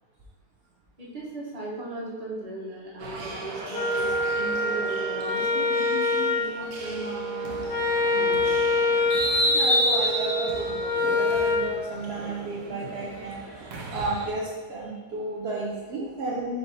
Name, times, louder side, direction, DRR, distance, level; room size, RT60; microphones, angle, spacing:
voice 1, 1.0-7.7 8.1-8.5, right 2 dB, 35° right, -4 dB, 0.7 m, -37 dB
sound 1, 3.0-14.3, equal, 65° right, 0.9 m, -31 dB
Wind instrument woodwind instrument, 3.7-11.7, left 2 dB, 80° left, 0.5 m, -26 dB
voice 2, 9.4-10.7 11.0-16.6, right 2 dB, 80° right, -3 dB, 0.5 m, -32 dB
4.8 x 2.6 x 3.9 m, 1.3 s
omnidirectional pair, 1.8 m